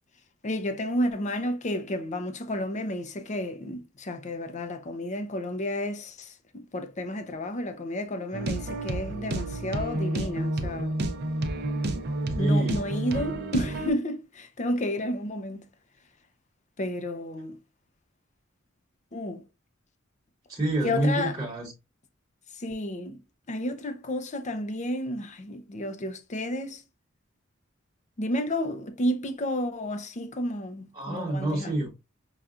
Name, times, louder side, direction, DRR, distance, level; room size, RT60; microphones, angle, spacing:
voice 1, 0.4-11.0 12.4-15.6 16.8-17.6 19.1-19.4 20.8-21.4 22.6-23.2 23.5-26.8 28.2-31.7, left 1 dB, 35° left, 0.6 m, -31 dB
sound 1, 8.3-13.9, right 1 dB, 55° right, 0.6 m, -30 dB
voice 2, 12.4-12.8 20.5-21.7 30.9-31.9, right 1 dB, 20° right, 1.2 m, -27 dB
5.7 x 2.3 x 2.4 m
head